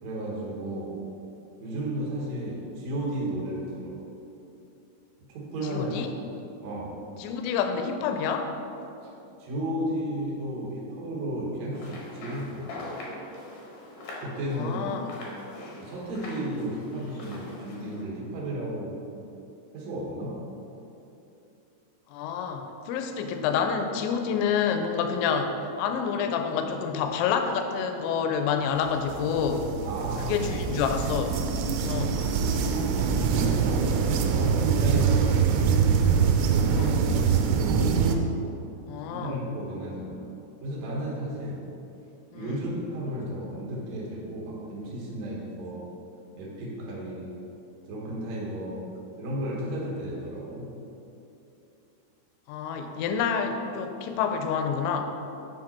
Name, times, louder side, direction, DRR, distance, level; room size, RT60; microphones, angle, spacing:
voice 1, 0.0-0.9 1.6-4.0 5.3-5.9 6.6-7.0 9.0-9.1 9.4-12.8 14.2-14.8 15.8-19.0 19.7-20.4 29.8-30.5 30.7-30.9 31.9-32.1 32.8-35.9 36.3-37.0 39.0-40.3 40.6-41.6 42.3-45.9 46.4-47.3 47.9-48.8 49.2-50.7, right 1 dB, 60° right, -4 dB, 1.9 m, -33 dB
voice 2, 5.7-6.1 7.2-8.5 14.5-15.0 22.1-29.7 30.3-31.4 31.8-32.2 36.7-37.0 38.9-39.4 42.3-42.6 52.5-55.0, left 6 dB, 85° left, 5 dB, 2.9 m, -28 dB
sound 1, 11.7-18.0, left 1 dB, 70° left, 1.8 m, -42 dB
sound 2, 29.0-38.2, right 6 dB, 90° right, 2.9 m, -24 dB
7.7 x 5.5 x 4.3 m, 2.8 s
omnidirectional pair, 5.1 m